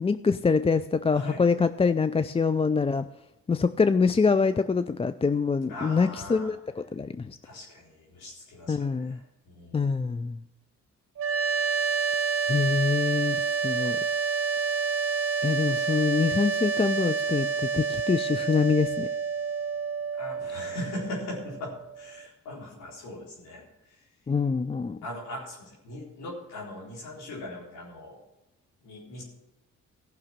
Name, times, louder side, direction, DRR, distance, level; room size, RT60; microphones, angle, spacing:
voice 1, 0.0-3.1 3.5-7.4 8.7-9.2 9.7-10.4 12.5-14.0 15.4-19.1 24.3-25.0, left 5 dB, 20° left, 12 dB, 0.4 m, -25 dB
voice 2, 1.1-1.5 5.7-6.5 7.4-9.8 20.1-24.1 25.0-28.2 28.8-29.2, left 1 dB, 90° left, -5 dB, 4.1 m, -40 dB
sound 1, 11.2-22.3, right 5 dB, 45° right, 0.9 m, -29 dB
15.0 x 6.1 x 7.4 m, 0.92 s
cardioid pair, 70°, 32 cm